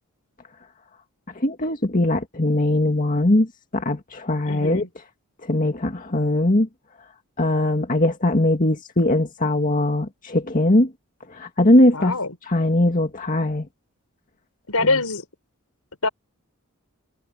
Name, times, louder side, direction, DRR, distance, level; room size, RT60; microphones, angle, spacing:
voice 1, 1.4-3.5 3.7-4.8 5.4-6.7 7.4-10.9 11.3-12.1 12.5-13.7, left 1 dB, 40° left, 1.9 m, -20 dB
voice 2, 4.4-4.9 11.9-12.3 14.7-15.2 16.0-16.1, left 3 dB, 80° left, 5.0 m, -24 dB
head